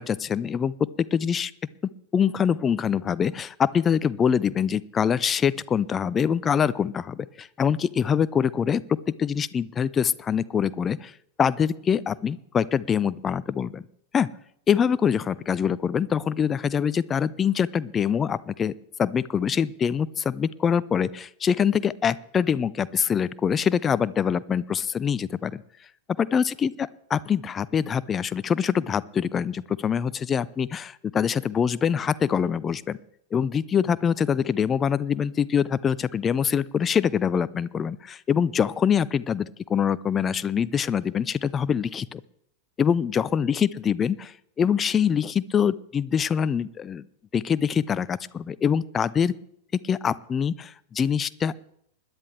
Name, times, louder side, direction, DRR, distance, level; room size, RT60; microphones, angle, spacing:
voice 1, 0.0-1.5 2.1-11.1 11.4-13.8 14.1-14.3 14.7-18.7 19.0-25.6 26.2-33.0 33.3-42.2 42.8-47.0 47.3-49.3 49.8-51.5, left 7 dB, 20° left, 18 dB, 0.4 m, -24 dB
21.0 x 10.5 x 3.3 m, 0.70 s
figure-of-eight pair, 90°, 0 cm